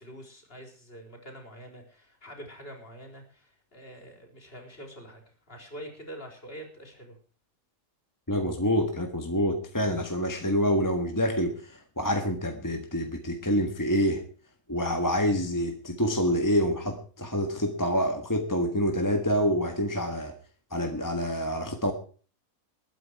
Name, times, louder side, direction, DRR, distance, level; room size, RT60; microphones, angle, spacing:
voice 1, 0.0-5.2 5.5-7.2, equal, 40° left, 3 dB, 4.3 m, -45 dB
voice 2, 8.3-14.2 14.7-20.3 20.7-21.9, equal, 15° left, 5 dB, 1.5 m, -27 dB
20.5 x 9.4 x 4.7 m, 0.41 s
omnidirectional pair, 1.5 m